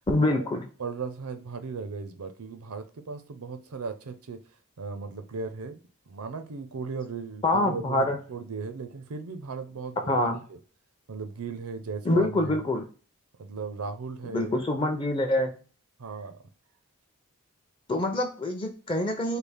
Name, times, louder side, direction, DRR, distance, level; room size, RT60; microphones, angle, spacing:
voice 1, 0.1-0.6 7.4-8.2 10.1-10.4 12.0-12.9 14.3-15.5 17.9-19.4, left 1 dB, 20° left, 4 dB, 0.5 m, -25 dB
voice 2, 0.8-4.4 4.8-5.8 6.1-10.2 11.1-12.6 13.4-14.5 16.0-16.4, right 4 dB, 85° right, 8 dB, 0.6 m, -37 dB
3.3 x 2.4 x 3.4 m, 0.37 s
head